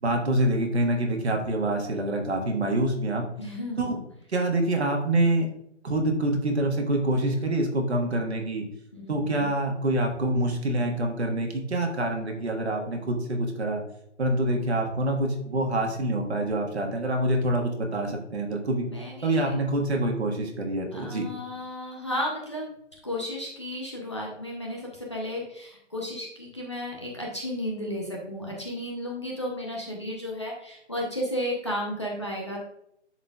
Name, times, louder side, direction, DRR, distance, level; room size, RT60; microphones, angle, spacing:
voice 1, 0.0-3.3 3.8-4.0 4.3-5.5 5.8-8.7 9.1-13.8 14.2-18.9 19.2-21.2, right 1 dB, 60° right, 2 dB, 1.5 m, -26 dB
voice 2, 3.4-4.0 8.9-9.5 15.5-15.9 18.8-19.5 20.9-22.7 23.0-32.6, left 1 dB, 25° left, -2 dB, 0.7 m, -33 dB
10.5 x 4.2 x 2.3 m, 0.75 s
hypercardioid pair, 180°, 37 cm